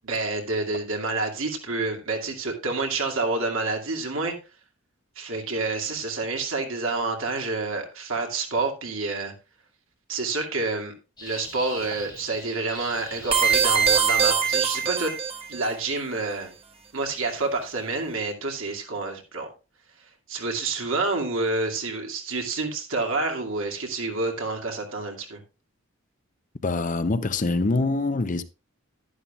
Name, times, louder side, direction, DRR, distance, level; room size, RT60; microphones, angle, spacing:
voice 1, 0.0-4.3 5.2-9.3 10.1-10.9 11.2-15.1 15.5-16.5 16.9-19.5 20.3-25.4, right 3 dB, 70° right, 2.3 m, -28 dB
sound 1, 11.2-14.8, left 2 dB, 20° left, 5.4 m, -43 dB
sound 2, 13.3-15.6, right 6 dB, 25° right, 1.3 m, -22 dB
voice 2, 26.6-28.4, left 3 dB, 35° left, 0.6 m, -24 dB
11.0 x 11.0 x 2.4 m
head